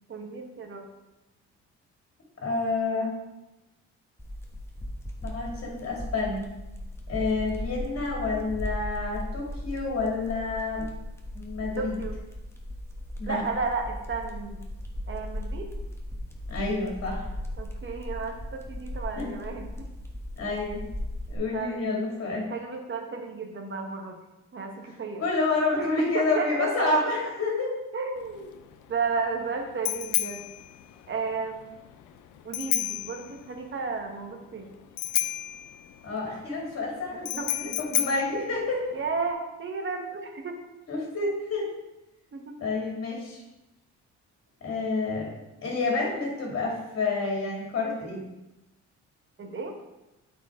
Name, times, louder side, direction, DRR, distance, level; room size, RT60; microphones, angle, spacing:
voice 1, 0.1-0.9 11.8-12.2 13.3-14.6 15.1-15.7 17.6-19.9 21.5-22.0 22.4-24.2 24.5-25.3 25.8-26.9 27.9-28.6 28.9-30.4 31.1-31.8 32.4-34.7 37.1-37.7 38.9-40.6 42.3-42.6 49.4-49.8, right 4 dB, 40° right, 4 dB, 1.2 m, -33 dB
voice 2, 2.4-3.1 5.2-6.5 7.1-10.9 11.3-11.9 13.2-13.4 16.5-17.3 19.2-19.3 20.4-20.8 21.3-22.5 25.2-27.7 36.0-38.9 40.9-41.7 42.6-43.4 44.6-48.2, left 3 dB, 50° left, -2 dB, 2.4 m, -29 dB
sound 1, 4.2-21.4, left 1 dB, 10° left, 1.1 m, -37 dB
Bicycle bell, 28.2-39.3, left 13 dB, 85° left, 0.5 m, -33 dB
8.2 x 4.6 x 3.6 m, 1.0 s
cardioid pair, 90°, 30 cm